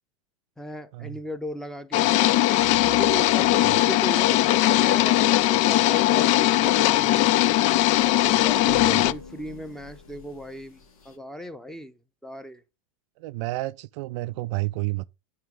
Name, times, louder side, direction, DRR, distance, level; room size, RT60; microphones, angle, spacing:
voice 1, 0.6-2.1 2.8-7.4 8.2-12.6, equal, 5° left, 0.8 m, -37 dB
sound 1, 1.9-9.1, left 16 dB, 40° left, 0.4 m, -20 dB
sound 2, 2.1-11.2, left 5 dB, 80° left, 1.9 m, -46 dB
voice 2, 8.6-9.0 13.2-15.1, right 20 dB, 55° right, 0.4 m, -31 dB
9.3 x 3.1 x 5.2 m
hypercardioid pair, 110°, 18 cm